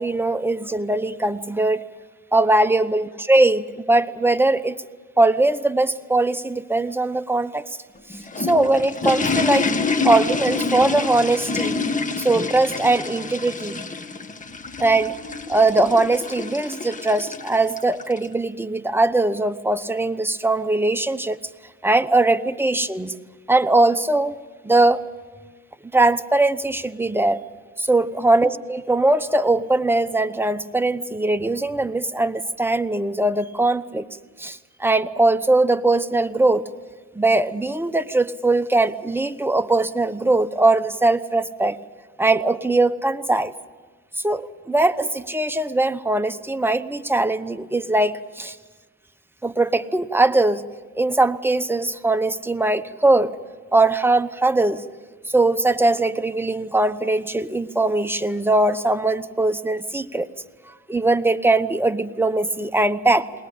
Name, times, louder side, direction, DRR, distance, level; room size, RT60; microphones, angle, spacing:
voice 1, 0.0-1.9 2.3-4.8 5.2-7.8 8.1-9.7 10.0-11.8 12.2-13.8 14.8-15.2 15.5-21.4 21.8-23.2 23.5-24.4 24.6-25.0 25.9-27.4 27.8-34.1 34.4-36.6 37.1-41.8 42.2-43.5 44.2-48.6 49.4-50.6 51.0-53.3 53.7-54.8 55.3-60.3 60.9-63.3, right 2 dB, 5° right, 10 dB, 1.0 m, -20 dB
sound 1, 7.9-18.3, left 4 dB, 25° left, 1.7 m, -27 dB
21.0 x 19.5 x 8.5 m, 1.4 s
cardioid pair, 90°, 30 cm